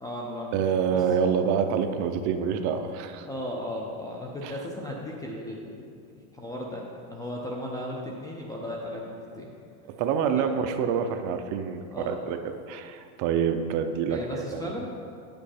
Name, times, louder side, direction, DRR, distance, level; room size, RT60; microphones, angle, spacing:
voice 1, 0.0-0.7 0.9-1.0 3.2-6.0 6.3-9.5 10.3-10.5 11.9-12.3 14.1-14.9, left 1 dB, 10° left, -2 dB, 0.3 m, -36 dB
voice 2, 0.5-3.3 4.4-4.6 9.9-12.4 12.7-14.7, right 7 dB, 45° right, 7 dB, 0.6 m, -27 dB
9.3 x 5.2 x 4.3 m, 2.3 s
supercardioid pair, 135°, 42 cm